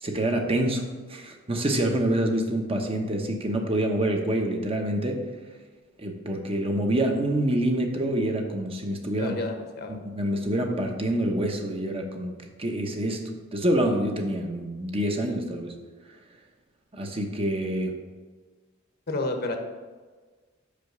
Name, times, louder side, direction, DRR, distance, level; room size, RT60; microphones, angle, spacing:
voice 1, 0.0-5.2 6.0-9.4 9.9-15.7 16.9-18.0, right 1 dB, 30° right, 3 dB, 0.9 m, -27 dB
voice 2, 9.2-10.0 19.1-19.6, left 2 dB, 50° left, 4 dB, 0.9 m, -30 dB
5.7 x 5.2 x 6.5 m, 1.4 s
head